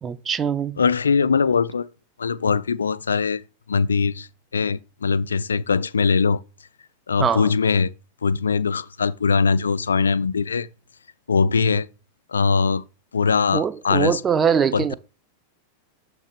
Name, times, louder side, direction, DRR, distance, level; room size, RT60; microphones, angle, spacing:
voice 1, 0.0-0.8 7.2-7.5 13.5-14.9, right 7 dB, 20° right, 0.5 m, -22 dB
voice 2, 0.8-1.9 2.2-3.4 3.7-4.3 4.5-6.4 7.1-7.9 8.2-10.7 11.3-11.9 12.3-12.8 13.1-14.2 14.7-14.9, left 5 dB, 70° left, 0.3 m, -21 dB
7.0 x 3.2 x 5.1 m
figure-of-eight pair, 90°, 0 cm